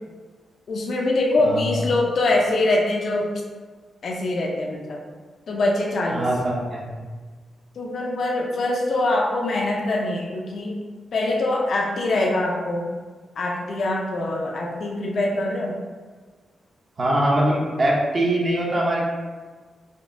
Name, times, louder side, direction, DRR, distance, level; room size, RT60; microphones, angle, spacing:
voice 1, 0.7-3.3 4.0-5.0 5.5-6.3 7.7-10.7 11.1-12.9 13.4-15.8, left 2 dB, 60° left, -1 dB, 0.4 m, -23 dB
voice 2, 6.1-7.1 17.0-19.1, right 1 dB, 40° right, -4 dB, 0.7 m, -22 dB
4.9 x 2.0 x 2.5 m, 1.4 s
cardioid pair, 105°, 0 cm